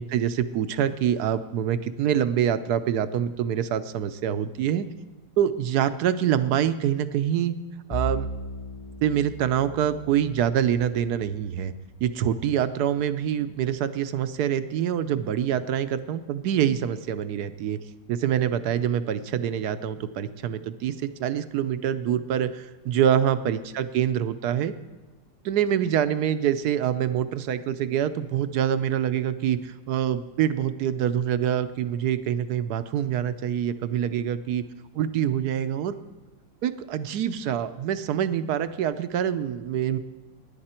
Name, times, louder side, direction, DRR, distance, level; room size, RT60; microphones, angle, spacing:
voice 1, 0.0-4.9 5.4-7.5 7.9-8.3 9.0-11.7 12.0-17.8 18.1-24.7 25.4-34.6 34.9-35.9 36.6-40.0, right 9 dB, 65° right, 12 dB, 1.1 m, -25 dB
Bowed string instrument, 7.9-12.5, right 2 dB, 40° left, 0.5 m, -37 dB
23.5 x 10.5 x 4.4 m, 1.2 s
omnidirectional pair, 2.0 m